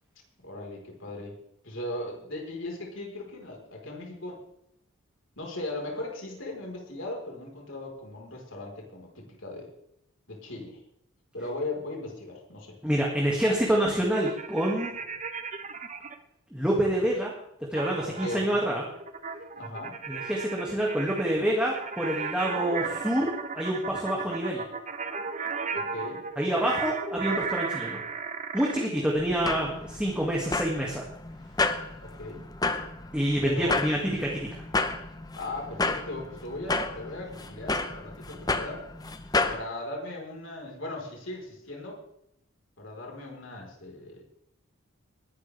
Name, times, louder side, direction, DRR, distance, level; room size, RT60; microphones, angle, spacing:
voice 1, 0.4-1.4 1.6-4.4 5.4-9.7 10.3-10.8 11.3-12.8 18.1-18.5 19.6-20.0 25.7-26.2 32.0-32.5 33.4-33.7 35.4-38.8 39.5-42.0 42.8-44.2, left 2 dB, 60° left, 0 dB, 4.5 m, -38 dB
voice 2, 12.8-14.9 16.5-17.3 17.7-18.8 20.1-24.6 26.4-28.0 28.5-31.1 33.1-34.5, right 1 dB, 5° right, -3 dB, 2.2 m, -27 dB
sound 1, 14.1-16.2 17.8-28.9, right 5 dB, 35° right, 1.0 m, -35 dB
sound 2, 29.2-39.6, left 3 dB, 15° left, 0.8 m, -31 dB
20.5 x 11.5 x 3.5 m, 0.79 s
head